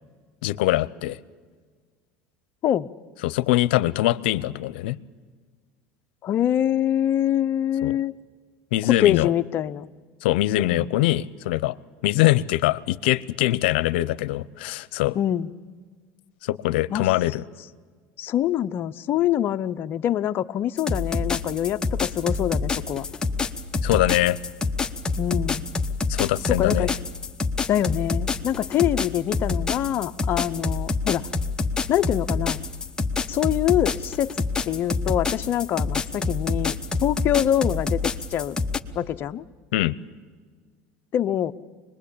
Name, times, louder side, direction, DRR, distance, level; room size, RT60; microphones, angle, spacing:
voice 1, 0.4-1.2 3.2-5.0 7.8-8.0 8.7-9.3 10.2-11.8 12.0-15.2 16.4-17.4 23.8-24.4 26.1-26.9 39.7-40.0, left 16 dB, 85° left, 18 dB, 0.7 m, -23 dB
voice 2, 6.2-8.1 8.9-9.9 10.7-10.8 15.1-15.5 16.9-17.1 18.2-23.0 25.2-25.7 26.5-26.9 27.7-31.2 31.9-32.6 33.3-34.3 34.7-38.0 38.3-38.6 39.0-39.4 41.1-41.5, left 11 dB, 40° left, 9 dB, 0.7 m, -24 dB
sound 1, 20.8-38.8, left 4 dB, 15° left, 1.0 m, -26 dB
24.5 x 21.0 x 8.6 m, 1.5 s
supercardioid pair, 125°, 5 cm